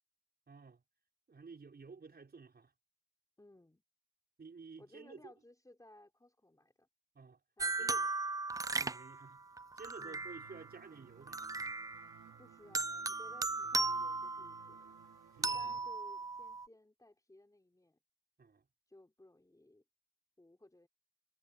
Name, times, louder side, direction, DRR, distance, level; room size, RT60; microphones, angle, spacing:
voice 1, 0.5-0.8 1.3-2.7 4.4-5.3 7.1-7.4 7.8-8.1 8.7-9.4 9.7-11.5 15.4-15.7 18.4-18.7, right 4 dB, 30° right, 5.5 m, -53 dB
voice 2, 3.4-3.8 4.8-6.9 7.6-8.1 10.0-10.3 12.4-15.0 15.4-18.0 18.9-19.8 20.4-20.9, left 1 dB, 10° left, 4.2 m, -60 dB
sound 1, 7.6-10.7 11.3-12.3 12.7-14.9 15.4-16.7, right 3 dB, 10° right, 0.4 m, -37 dB
sound 2, 10.2-15.8, right 10 dB, 70° right, 3.0 m, -60 dB
cardioid pair, 90°, 30 cm